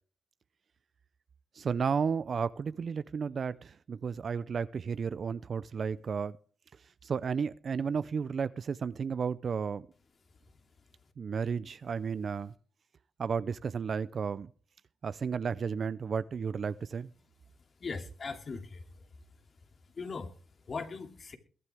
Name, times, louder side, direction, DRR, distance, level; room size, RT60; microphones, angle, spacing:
voice 1, 1.5-6.4 7.0-9.9 11.2-12.5 13.2-14.5 15.0-17.1, right 6 dB, 60° right, 0.5 m, -33 dB
voice 2, 17.8-18.8 20.0-20.3 20.7-21.4, left 4 dB, 50° left, 2.6 m, -39 dB
22.0 x 9.6 x 3.5 m
supercardioid pair, 50°, 0 cm